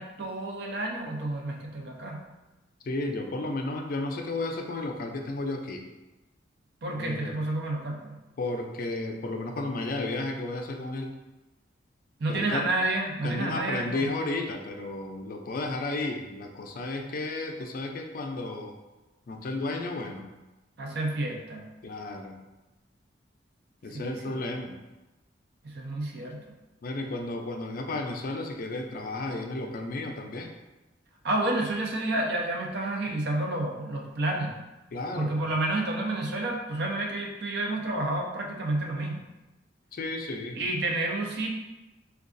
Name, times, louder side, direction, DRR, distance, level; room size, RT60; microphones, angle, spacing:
voice 1, 0.0-2.2 6.8-8.2 12.2-14.1 20.8-21.6 23.9-24.5 25.6-26.4 31.2-34.6 35.1-39.2 40.6-41.5, right 2 dB, 60° right, 1 dB, 0.6 m, -30 dB
voice 2, 2.8-5.8 7.0-7.3 8.4-11.1 12.3-12.7 13.2-18.8 19.3-20.3 21.8-22.4 23.8-24.8 26.8-30.5 34.9-35.5 39.9-40.6, left 2 dB, 50° left, 3 dB, 0.4 m, -33 dB
4.6 x 2.3 x 2.5 m, 1.0 s
head